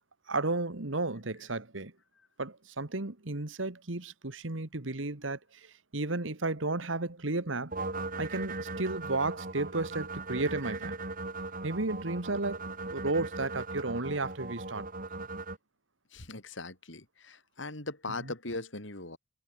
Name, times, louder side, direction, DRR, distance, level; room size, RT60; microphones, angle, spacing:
voice 1, 0.3-1.9 2.4-7.7 8.2-11.0 11.6-14.9 15.2-15.3 18.2-18.3, right 2 dB, 80° right, 1.9 m, -33 dB
sound 1, 7.7-15.6, right 3 dB, 45° right, 4.4 m, -38 dB
voice 2, 16.1-19.2, left 2 dB, 70° left, 4.4 m, -40 dB
head